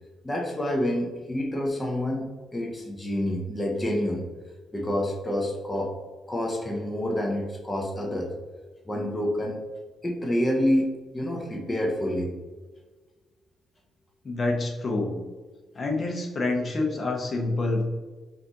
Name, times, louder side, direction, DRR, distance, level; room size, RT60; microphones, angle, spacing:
voice 1, 0.2-4.3 4.7-5.9 6.3-8.3 8.9-9.6 10.0-12.3, left 1 dB, 15° left, 0 dB, 0.8 m, -28 dB
voice 2, 14.2-15.1 15.7-17.8, left 2 dB, 40° left, 0 dB, 1.1 m, -27 dB
5.8 x 2.7 x 2.9 m, 1.3 s
cardioid pair, 90°, 0 cm